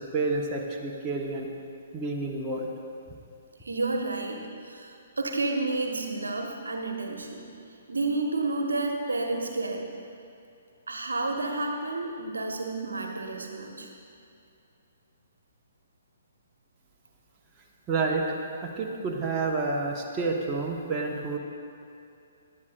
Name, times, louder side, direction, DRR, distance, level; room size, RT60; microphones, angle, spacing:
voice 1, 0.1-1.5 1.9-2.7 17.9-18.2 18.6-21.4, right 3 dB, 15° right, -2 dB, 1.1 m, -29 dB
voice 2, 3.6-7.5 7.9-9.8 10.9-13.9, right 2 dB, 70° right, 3 dB, 1.1 m, -30 dB
17.0 x 11.0 x 2.4 m, 2.6 s
figure-of-eight pair, 125°, 0 cm